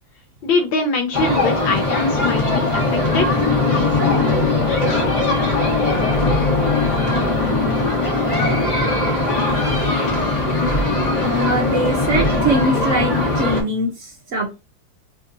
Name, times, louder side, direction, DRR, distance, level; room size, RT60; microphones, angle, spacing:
voice 1, 0.4-3.3, left 3 dB, 80° left, 3 dB, 1.5 m, -22 dB
sound 1, 1.1-13.6, left 2 dB, 35° left, 0.7 m, -19 dB
voice 2, 11.2-14.6, right 1 dB, 60° right, 1 dB, 0.8 m, -22 dB
3.5 x 2.7 x 2.5 m, 0.25 s
omnidirectional pair, 2.2 m